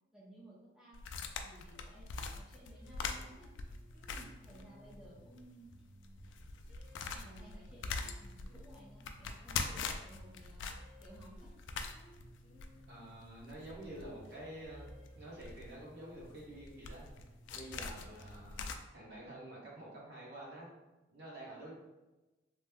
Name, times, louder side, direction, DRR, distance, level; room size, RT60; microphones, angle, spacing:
voice 1, 0.1-1.0 1.4-3.5 4.1-5.7 6.8-10.7 11.0-11.5 17.8-18.1, right 1 dB, 5° right, -7 dB, 0.6 m, -57 dB
sound 1, 0.9-5.1 5.4-5.5 6.0-18.8, left 5 dB, 75° left, 0.3 m, -43 dB
sound 2, 2.7-18.7, equal, 40° right, 0.7 m, -59 dB
voice 2, 12.9-17.1 17.5-20.7 21.1-21.7, right 1 dB, 60° right, -5 dB, 1.1 m, -49 dB
3.1 x 2.0 x 3.5 m, 1.1 s
head